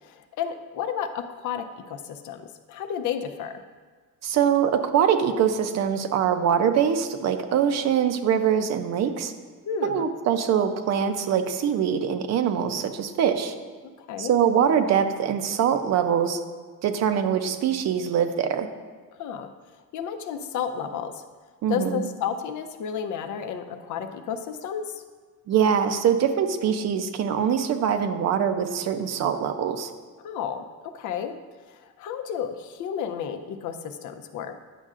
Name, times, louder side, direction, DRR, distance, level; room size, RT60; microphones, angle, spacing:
voice 1, 0.0-3.6 9.6-10.1 13.8-14.3 19.2-19.5 19.9-21.2 21.7-25.0 30.2-31.4 31.7-34.6, left 8 dB, 65° left, 8 dB, 0.6 m, -32 dB
voice 2, 4.2-9.3 9.8-13.5 14.2-16.4 16.8-18.7 21.6-22.1 25.5-29.9, right 8 dB, 55° right, 8 dB, 0.6 m, -23 dB
9.9 x 6.4 x 2.5 m, 1.4 s
cardioid pair, 170°, 32 cm